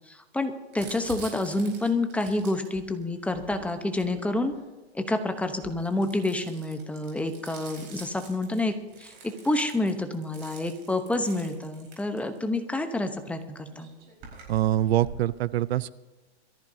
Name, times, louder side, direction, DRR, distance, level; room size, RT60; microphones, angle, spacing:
voice 1, 0.1-4.5 4.9-13.9, left 2 dB, 5° left, 7 dB, 0.9 m, -28 dB
Crumpling crinkling, 0.7-4.8 5.5-12.6 13.4-13.5 13.7-15.3, right 4 dB, 30° right, 4.7 m, -46 dB
voice 2, 14.5-15.9, right 13 dB, 65° right, 18 dB, 0.6 m, -24 dB
23.0 x 14.0 x 2.8 m, 1.2 s
hypercardioid pair, 135°, 34 cm